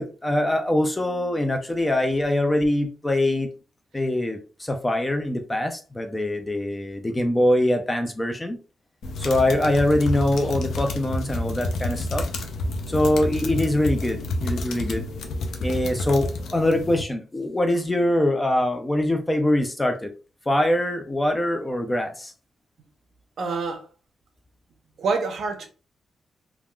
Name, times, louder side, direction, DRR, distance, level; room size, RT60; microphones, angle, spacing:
voice 1, 0.0-3.5 3.9-8.6 9.2-12.3 12.9-15.1 15.6-20.1 20.5-22.3, left 1 dB, 10° left, 0.3 m, -23 dB
sound 1, 9.0-17.0, left 2 dB, 75° left, 0.5 m, -29 dB
voice 2, 23.4-23.8 25.0-25.7, right 4 dB, 60° right, 0.6 m, -26 dB
3.4 x 2.3 x 2.3 m
wide cardioid pair, 165°, 0 cm